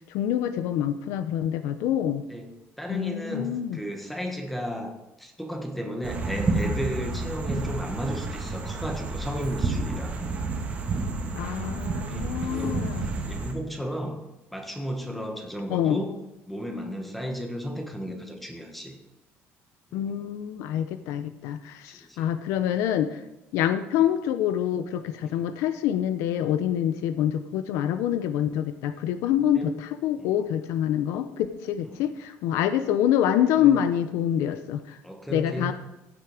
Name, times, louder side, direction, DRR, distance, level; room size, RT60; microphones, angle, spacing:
voice 1, 0.0-2.2 2.9-3.8 11.4-13.1 15.7-16.0 19.9-23.2 23.5-35.0 35.3-35.7, left 10 dB, 90° left, 11 dB, 0.8 m, -26 dB
voice 2, 2.8-4.9 5.2-10.1 11.5-14.2 14.5-16.1 16.5-19.0 19.9-20.2 22.1-22.3 25.2-25.3 29.4-29.8 30.2-30.5 31.8-32.0 33.6-33.8 35.0-35.7, equal, ahead, 3 dB, 1.5 m, -34 dB
sound 1, 6.0-13.5, right 3 dB, 25° right, 1.8 m, -30 dB
15.0 x 8.2 x 5.0 m, 0.95 s
cardioid pair, 175°, 5 cm